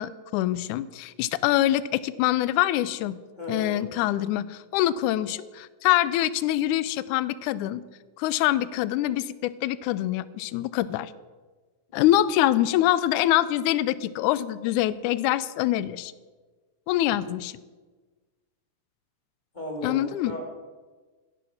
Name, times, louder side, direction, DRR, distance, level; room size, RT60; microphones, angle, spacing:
voice 1, 0.0-3.2 3.5-7.8 8.2-11.1 11.9-16.1 16.9-17.5 19.8-20.4, left 13 dB, 80° left, 17 dB, 2.0 m, -25 dB
voice 2, 3.4-3.8 19.5-20.5, left 1 dB, 15° left, 0 dB, 2.6 m, -35 dB
16.5 x 9.2 x 6.4 m, 1.3 s
omnidirectional pair, 3.7 m